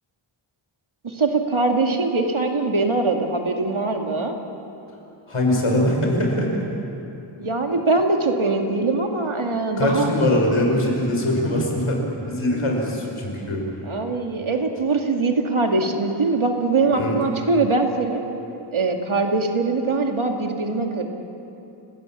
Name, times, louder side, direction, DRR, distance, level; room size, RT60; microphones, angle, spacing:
voice 1, 1.0-4.3 7.4-10.1 13.9-18.3 18.7-21.0, right 3 dB, 70° right, 3 dB, 2.3 m, -22 dB
voice 2, 5.3-6.7 9.8-13.6 16.9-17.2, left 1 dB, 75° left, 0 dB, 5.4 m, -22 dB
30.0 x 17.5 x 7.4 m, 2.9 s
wide cardioid pair, 75°, 50 cm